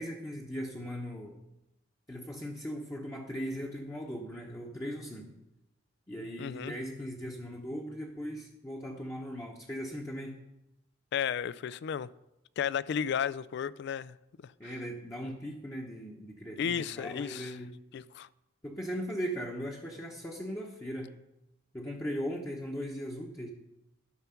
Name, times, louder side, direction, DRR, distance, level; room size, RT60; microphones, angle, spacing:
voice 1, 0.0-1.4 2.1-5.4 6.1-10.4 14.6-17.7 18.6-21.1 21.7-23.5, equal, 15° left, 0.9 m, -38 dB
voice 2, 6.4-6.7 11.1-12.1 12.6-14.1 14.4-14.7 16.6-17.6 17.9-18.3, left 8 dB, 55° left, 0.3 m, -33 dB
11.0 x 5.9 x 5.8 m
head